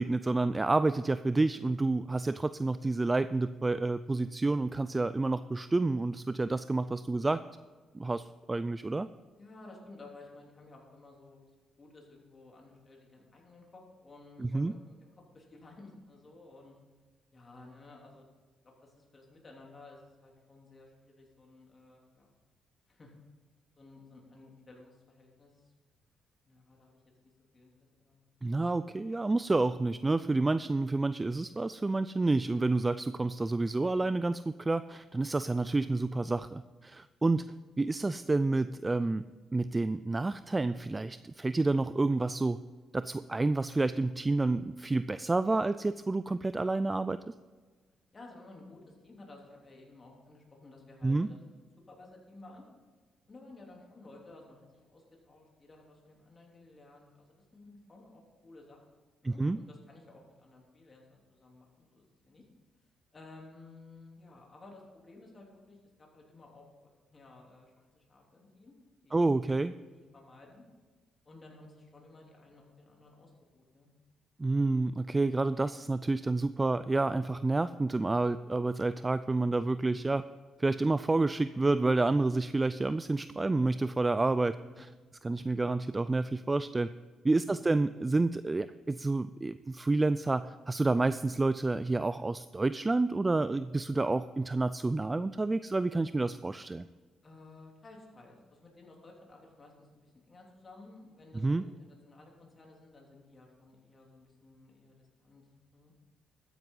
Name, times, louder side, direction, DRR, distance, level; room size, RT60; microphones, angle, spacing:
voice 1, 0.0-7.4 7.9-9.1 14.4-14.7 28.4-39.3 39.5-42.6 42.9-47.3 51.0-51.3 59.2-59.6 69.1-69.7 74.4-80.2 80.6-84.9 85.2-86.9 87.2-96.9 101.3-101.6, right 2 dB, 20° right, 13 dB, 0.3 m, -29 dB
voice 2, 9.4-11.4 11.8-16.8 17.3-18.3 18.6-22.3 22.9-23.1 23.8-25.7 26.5-27.0 27.5-27.7 28.0-28.2 48.1-52.6 53.3-57.3 57.5-62.4 63.1-68.7 69.0-69.4 69.7-70.6 71.2-73.9 79.9-80.1 84.6-85.0 87.4-87.9 97.2-105.5 105.7-105.9, left 2 dB, 30° left, -1 dB, 3.2 m, -55 dB
13.0 x 9.5 x 3.9 m, 1.4 s
cardioid pair, 90°, 0 cm